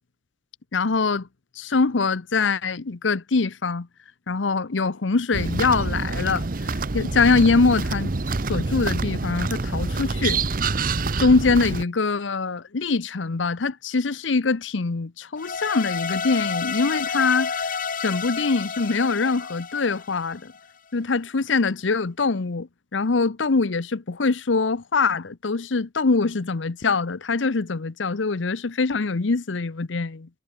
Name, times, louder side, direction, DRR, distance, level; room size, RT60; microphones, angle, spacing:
voice 1, 0.7-1.3 1.6-3.9 4.3-8.1 8.5-10.4 11.2-17.5 18.0-20.5 20.9-30.3, left 4 dB, 85° left, 0.8 m, -23 dB
sound 1, 5.3-11.8, right 3 dB, 50° right, 0.9 m, -26 dB
sound 2, 15.4-20.6, left 5 dB, 45° left, 1.1 m, -30 dB
head